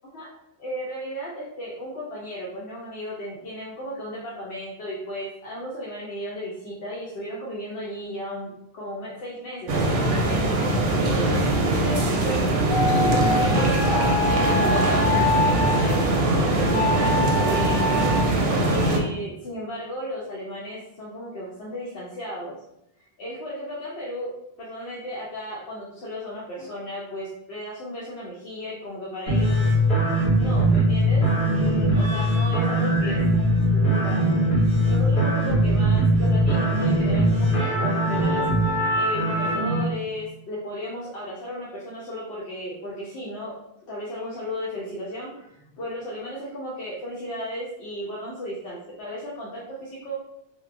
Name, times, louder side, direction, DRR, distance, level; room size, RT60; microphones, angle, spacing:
voice 1, 0.6-12.5 12.9-15.4 15.7-22.6 23.0-24.3 24.6-29.8 30.4-31.3 31.5-33.4 33.7-34.2 34.8-43.5 43.9-50.1, equal, 85° left, -6 dB, 0.9 m, -35 dB
sound 1, 9.7-19.0, right 2 dB, 65° right, 0.6 m, -22 dB
sound 2, 12.7-15.9 16.7-18.2, left 3 dB, 25° left, 0.9 m, -25 dB
sound 3, 29.3-39.8, right 1 dB, 55° left, 1.6 m, -21 dB
2.8 x 2.1 x 2.4 m, 0.82 s
omnidirectional pair, 1.1 m